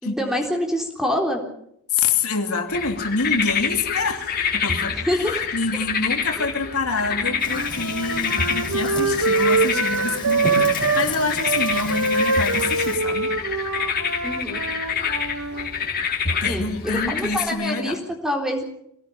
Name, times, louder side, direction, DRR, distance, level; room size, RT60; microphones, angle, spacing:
voice 1, 0.0-1.4 4.9-5.5 6.4-6.5 14.2-14.6 16.4-16.6 17.1-18.6, equal, ahead, 2 dB, 3.7 m, -25 dB
voice 2, 1.9-13.3 16.2-18.0, left 4 dB, 75° left, 4 dB, 2.8 m, -26 dB
sound 1, 2.7-17.5, left 6 dB, 45° left, 3.2 m, -27 dB
Wind instrument woodwind instrument, 7.2-11.1 11.4-15.7, right 3 dB, 80° right, 2.2 m, -24 dB
Fire, 7.4-13.0, left 2 dB, 20° left, 5.4 m, -35 dB
24.5 x 18.5 x 7.2 m, 0.72 s
head